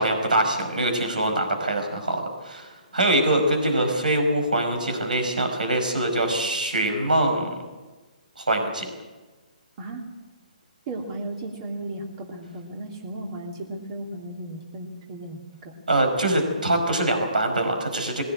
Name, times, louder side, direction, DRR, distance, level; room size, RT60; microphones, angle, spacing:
voice 1, 0.0-7.6 8.4-8.9 15.9-18.2, right 1 dB, 85° right, 5 dB, 5.0 m, -23 dB
voice 2, 10.9-15.7, right 2 dB, 40° right, 1 dB, 2.9 m, -35 dB
20.5 x 17.0 x 8.8 m, 1.2 s
hypercardioid pair, 140°, 4 cm